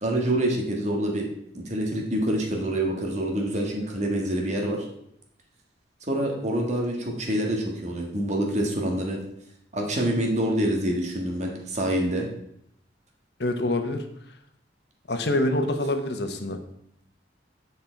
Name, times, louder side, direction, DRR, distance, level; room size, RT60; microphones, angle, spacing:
voice 1, 0.0-1.3 1.5-4.9 6.1-9.2 9.7-12.3, right 1 dB, 40° right, 0 dB, 1.8 m, -26 dB
voice 2, 13.4-14.0 15.1-16.6, left 1 dB, 60° left, 5 dB, 1.1 m, -26 dB
9.4 x 5.6 x 4.5 m, 0.73 s
head